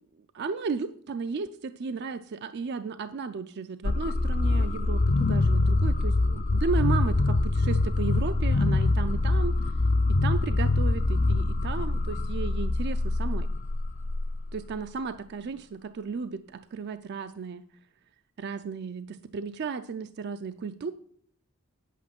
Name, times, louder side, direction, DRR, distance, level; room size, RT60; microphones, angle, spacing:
voice 1, 0.3-1.5 1.8-9.5 10.1-13.5 14.5-17.6 18.4-20.9, right 5 dB, 55° right, 10 dB, 0.4 m, -34 dB
sound 1, 3.8-14.7, left 2 dB, 35° left, 0.5 m, -24 dB
9.5 x 8.3 x 6.0 m, 0.64 s
head